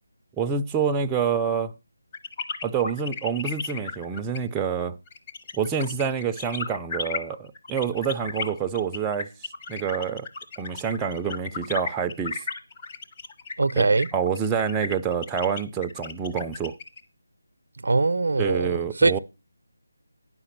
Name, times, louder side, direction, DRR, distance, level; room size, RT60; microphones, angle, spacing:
voice 1, 0.4-1.7 2.6-5.0 5.5-9.3 9.7-10.3 10.6-12.4 13.8-13.9 14.1-16.7 18.4-19.2, right 6 dB, 10° right, 0.4 m, -27 dB
sound 1, 2.1-17.0, left 4 dB, 25° left, 0.9 m, -34 dB
voice 2, 13.6-14.1 17.8-18.7 19.0-19.2, right 3 dB, 70° right, 0.4 m, -21 dB
9.8 x 5.8 x 5.8 m
figure-of-eight pair, 165°, 0 cm